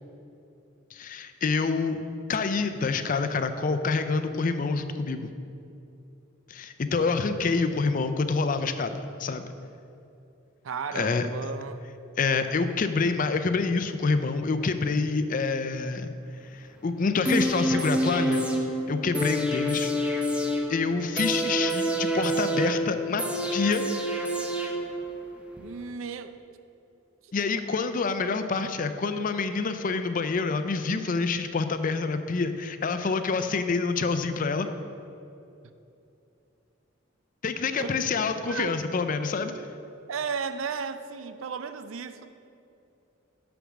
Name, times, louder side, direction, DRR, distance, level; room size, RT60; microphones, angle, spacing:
voice 1, 0.9-2.0 2.3-5.3 6.5-9.4 11.0-11.3 12.2-16.1 16.5-18.5 18.9-20.2 20.7-23.2 23.5-23.8 27.3-34.7 37.4-39.5, left 4 dB, 45° left, 9 dB, 0.4 m, -27 dB
voice 2, 10.6-11.8 25.6-26.4 27.2-27.3 27.8-27.9 37.8-38.1 38.5-38.7 39.5-39.7 40.1-42.3, right 5 dB, 90° right, 10 dB, 0.5 m, -35 dB
sound 1, 17.2-25.2 25.6-25.7, right 1 dB, 5° right, 0.6 m, -28 dB
6.7 x 6.1 x 6.2 m, 2.7 s
head